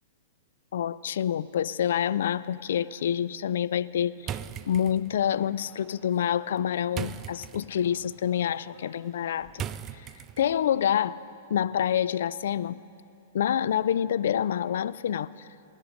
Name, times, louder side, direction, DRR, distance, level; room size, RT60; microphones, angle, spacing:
voice 1, 0.7-4.4 4.7-9.6 10.4-11.2 11.5-12.8 13.3-15.5, left 9 dB, 65° left, 17 dB, 0.3 m, -27 dB
sound 1, 4.2-10.7, right 9 dB, 30° right, 0.4 m, -41 dB
19.0 x 9.8 x 5.2 m, 2.6 s
hypercardioid pair, 110°, 0 cm